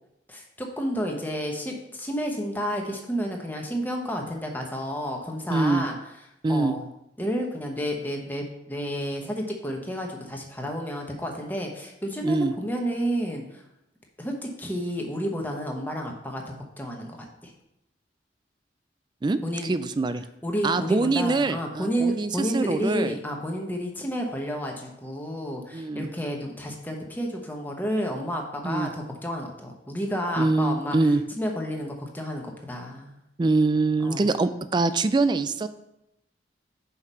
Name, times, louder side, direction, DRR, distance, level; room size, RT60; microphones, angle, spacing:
voice 1, 0.3-5.9 6.5-6.8 7.2-13.6 14.2-17.5 19.4-19.7 20.4-31.0 31.4-33.2 34.0-34.3, equal, 10° left, 1 dB, 1.0 m, -31 dB
voice 2, 5.5-5.8 6.4-6.8 12.2-12.5 19.2-20.2 20.6-23.2 25.7-26.1 28.6-28.9 30.4-31.2 33.4-35.7, right 3 dB, 25° right, 12 dB, 0.3 m, -24 dB
5.8 x 4.7 x 5.4 m, 0.85 s
head